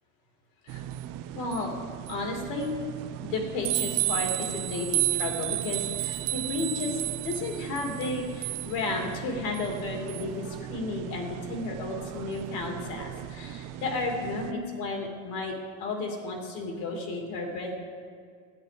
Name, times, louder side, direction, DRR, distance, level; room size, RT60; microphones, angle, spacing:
sound 1, 0.7-14.5, right 15 dB, 60° right, 0.6 m, -34 dB
voice 1, 1.3-1.8 2.1-2.7 3.2-15.5 15.8-17.7, left 2 dB, 70° left, 2 dB, 2.6 m, -33 dB
13.0 x 9.9 x 5.0 m, 2.2 s
cardioid pair, 170°, 36 cm